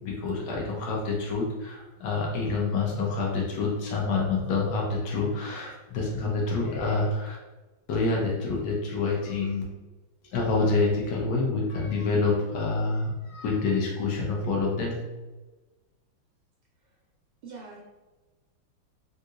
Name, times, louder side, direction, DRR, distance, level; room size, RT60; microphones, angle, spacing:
voice 1, 0.0-7.4 7.9-9.6 10.3-15.0, left 3 dB, 75° left, -2 dB, 0.9 m, -27 dB
voice 2, 17.4-17.8, right 4 dB, 75° right, -2 dB, 1.2 m, -43 dB
3.7 x 2.7 x 2.4 m, 1.2 s
omnidirectional pair, 2.3 m